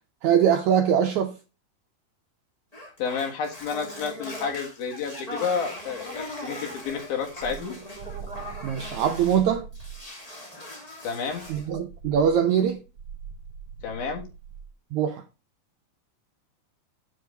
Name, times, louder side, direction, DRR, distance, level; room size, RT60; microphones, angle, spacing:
voice 1, 0.2-1.4 8.6-9.7 11.5-12.8 14.9-15.2, right 8 dB, 75° right, 1.7 m, -22 dB
sound 1, 2.7-9.4 9.7-11.7, equal, 15° left, 2.0 m, -40 dB
voice 2, 3.0-7.8 11.0-11.4 13.8-14.2, left 6 dB, 80° left, 3.6 m, -30 dB
sound 2, 6.9-10.1 11.3-14.8, right 7 dB, 35° right, 1.4 m, -42 dB
8.7 x 7.5 x 3.9 m
omnidirectional pair, 4.2 m